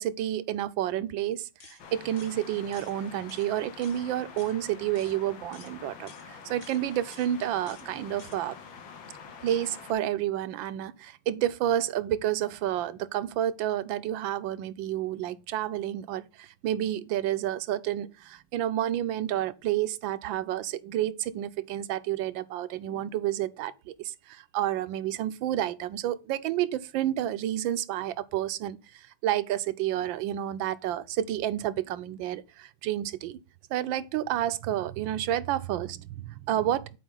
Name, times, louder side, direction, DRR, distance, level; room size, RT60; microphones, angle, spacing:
voice 1, 0.0-8.6 9.4-33.4 33.7-37.0, right 12 dB, 75° right, 1.3 m, -30 dB
sound 1, 1.6-1.8 2.2-2.4 2.7-2.9 3.3-3.5 3.8-4.0 4.4-4.5 4.9-5.1 5.5-5.7 6.1-6.2 6.6-6.8 7.1-7.3 7.7-7.9 8.2-8.4, left 4 dB, 45° left, 1.7 m, -52 dB
sound 2, 1.8-9.9, left 6 dB, 75° left, 1.9 m, -46 dB
10.0 x 4.6 x 3.9 m
omnidirectional pair, 2.2 m